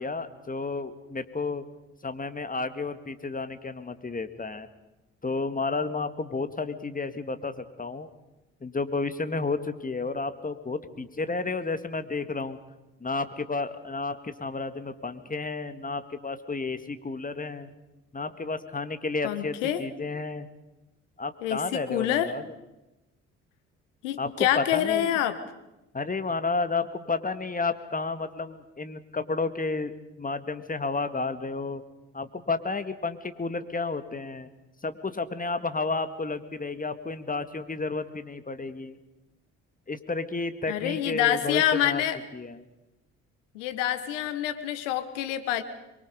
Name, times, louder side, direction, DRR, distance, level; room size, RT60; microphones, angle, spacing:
voice 1, 0.0-1.7 2.0-4.7 5.2-8.1 8.6-12.6 13.0-17.7 18.1-20.5 21.2-22.4 24.2-25.1 25.9-31.8 32.1-34.5 34.8-39.0 39.9-42.0 42.3-42.7, left 3 dB, 25° left, 11 dB, 2.0 m, -31 dB
voice 2, 19.2-19.8 21.4-22.3 24.0-25.4 40.7-42.2 43.5-45.6, left 11 dB, 80° left, 11 dB, 1.4 m, -26 dB
25.0 x 23.0 x 5.2 m, 0.98 s
hypercardioid pair, 45°, 36 cm